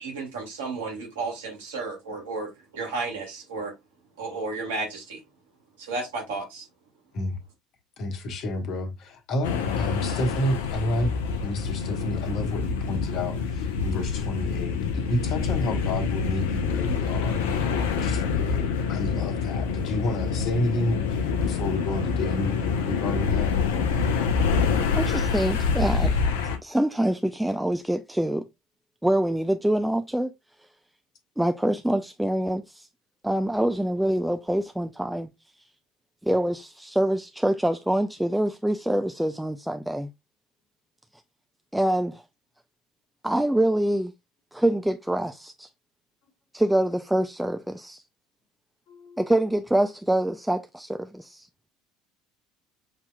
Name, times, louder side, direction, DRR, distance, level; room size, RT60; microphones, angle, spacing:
voice 1, 0.0-3.7 4.2-5.2 5.8-6.7, right 3 dB, 70° right, 1.6 m, -33 dB
voice 2, 8.0-11.1 11.4-17.4 17.9-23.6 48.9-49.2, left 1 dB, 50° left, 1.1 m, -30 dB
sound 1, 9.4-26.6, left 5 dB, 65° left, 0.6 m, -26 dB
voice 3, 25.0-26.2 26.6-28.5 29.0-30.3 31.4-32.9 33.2-35.3 36.2-40.1 41.7-42.2 43.2-44.1 44.5-45.7 46.5-48.0 49.2-51.5, right 1 dB, 5° right, 0.3 m, -25 dB
6.7 x 2.8 x 2.2 m
figure-of-eight pair, 65°, 0 cm